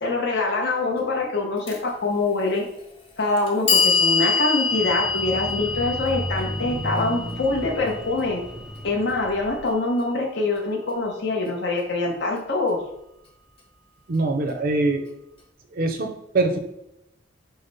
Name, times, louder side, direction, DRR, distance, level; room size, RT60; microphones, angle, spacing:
voice 1, 0.0-2.7 3.2-8.4 8.8-12.8, left 2 dB, 65° left, -1 dB, 0.8 m, -24 dB
Clock, 1.7-1.8 2.7-2.8 3.4-9.4, left 5 dB, 30° left, 0.7 m, -25 dB
sound 1, 4.7-9.7, equal, 5° right, 0.3 m, -34 dB
voice 2, 14.1-15.0 15.7-16.6, right 2 dB, 50° right, 5 dB, 0.5 m, -23 dB
5.0 x 2.1 x 4.0 m, 0.83 s
head